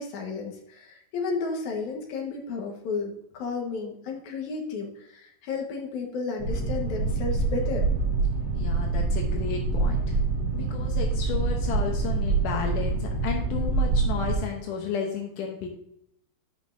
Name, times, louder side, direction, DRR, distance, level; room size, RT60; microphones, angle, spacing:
voice 1, 0.0-7.9, left 4 dB, 60° left, 1 dB, 2.1 m, -33 dB
Boat Water vehicle, 6.4-14.4, right 3 dB, 40° right, 4.0 m, -26 dB
voice 2, 8.5-10.2 10.5-15.7, left 6 dB, 80° left, 2 dB, 1.9 m, -33 dB
13.5 x 5.4 x 2.6 m, 0.75 s
omnidirectional pair, 4.9 m